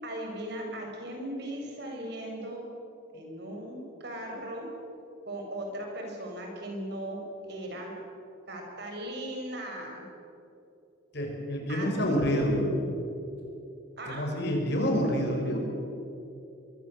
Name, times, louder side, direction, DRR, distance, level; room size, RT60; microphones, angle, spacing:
voice 1, 0.0-2.6 3.1-4.7 5.3-7.2 7.5-7.9 8.5-10.0 11.7-12.9 14.0-14.2, right 1 dB, 55° right, 1 dB, 6.9 m, -37 dB
voice 2, 11.1-12.6 14.1-15.6, equal, 55° left, 1 dB, 6.1 m, -28 dB
24.5 x 23.5 x 8.2 m, 2.8 s
head